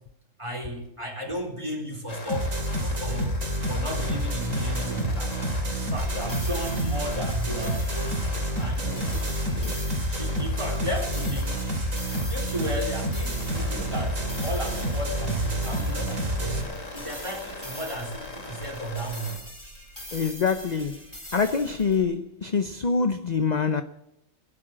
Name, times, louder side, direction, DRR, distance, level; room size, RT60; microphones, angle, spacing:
voice 1, 0.4-3.4 3.7-5.4 5.8-9.0 10.1-11.6 12.3-19.4, right 1 dB, 20° right, 3.7 m, -34 dB
sound 1, 2.1-19.4, left 3 dB, 75° left, 3.1 m, -41 dB
sound 2, 2.3-16.6, right 1 dB, 80° right, 3.2 m, -28 dB
sound 3, 6.0-22.0, equal, 15° left, 4.7 m, -43 dB
voice 2, 8.8-9.2 9.5-9.7 20.1-21.0 21.3-23.8, left 5 dB, 40° left, 0.8 m, -26 dB
17.0 x 11.0 x 7.5 m
omnidirectional pair, 1.3 m